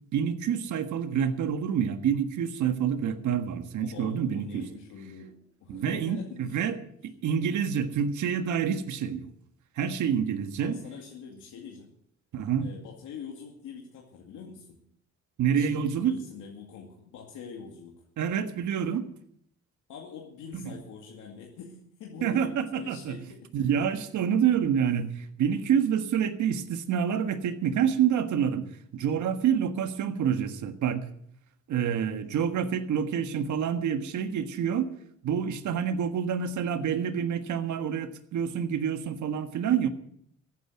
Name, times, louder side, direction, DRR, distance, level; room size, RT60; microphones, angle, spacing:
voice 1, 0.1-4.6 5.7-6.8 7.2-9.3 9.8-10.8 12.3-12.7 15.4-16.1 18.2-19.0 20.6-20.8 22.2-23.2 23.5-28.7 28.9-31.0 31.7-34.9 35.2-39.9, right 8 dB, 75° right, 9 dB, 1.6 m, -27 dB
voice 2, 3.8-6.7 10.6-11.9 12.6-14.8 15.6-17.9 19.9-23.5 32.2-32.5, left 6 dB, 85° left, -1 dB, 2.4 m, -44 dB
14.5 x 9.2 x 7.8 m, 0.69 s
cardioid pair, 90°, 30 cm